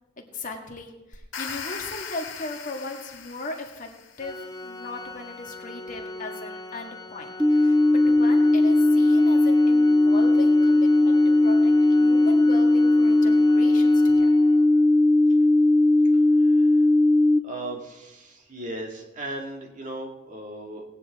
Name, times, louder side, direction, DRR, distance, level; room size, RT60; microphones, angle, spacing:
voice 1, 0.2-3.9 4.2-7.8 8.1-14.4, left 2 dB, 40° left, 2 dB, 1.8 m, -37 dB
sound 1, 1.1-4.3, left 6 dB, 90° left, 2.1 m, -38 dB
Organ, 4.2-14.9, left 2 dB, 20° left, 0.8 m, -41 dB
sound 2, 7.4-17.4, left 2 dB, ahead, 0.3 m, -18 dB
voice 2, 16.3-16.8 17.4-20.8, right 1 dB, 40° right, 1 dB, 2.2 m, -37 dB
18.0 x 9.7 x 3.6 m, 1.0 s
head